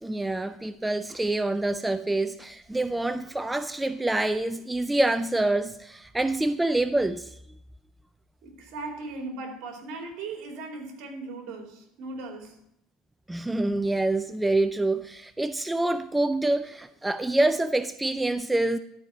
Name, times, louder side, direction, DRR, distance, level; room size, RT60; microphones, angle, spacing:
voice 1, 0.0-7.3 13.3-18.8, right 2 dB, 5° right, 0.3 m, -26 dB
voice 2, 8.4-12.6, right 3 dB, 65° right, 2.6 m, -38 dB
12.0 x 4.8 x 5.6 m
cardioid pair, 130°, 0 cm